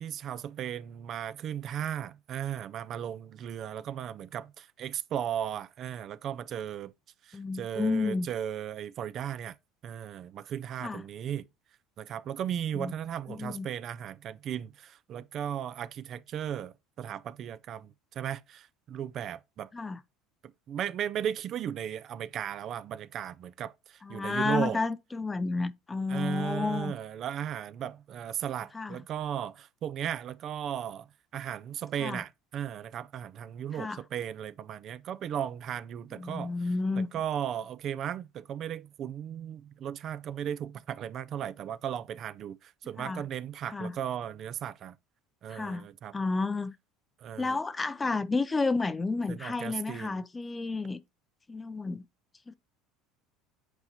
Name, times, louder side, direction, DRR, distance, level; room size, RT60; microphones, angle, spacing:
voice 1, 0.0-6.9 7.2-9.6 9.8-11.5 12.0-19.7 20.7-24.8 26.1-31.1 31.3-36.5 37.0-45.0 45.4-46.1 47.2-47.6 49.3-50.2, right 9 dB, 45° right, 0.4 m, -36 dB
voice 2, 7.3-8.3 10.8-11.0 12.7-12.9 13.3-13.7 19.7-20.0 24.0-26.9 28.7-29.0 32.0-32.2 33.7-34.0 36.2-37.1 43.0-43.2 43.7-44.0 45.5-45.9 46.1-46.7 47.4-51.0 51.5-52.1 52.5-52.6, left 3 dB, 15° left, 0.5 m, -31 dB
8.0 x 4.2 x 2.9 m
supercardioid pair, 115°, 0 cm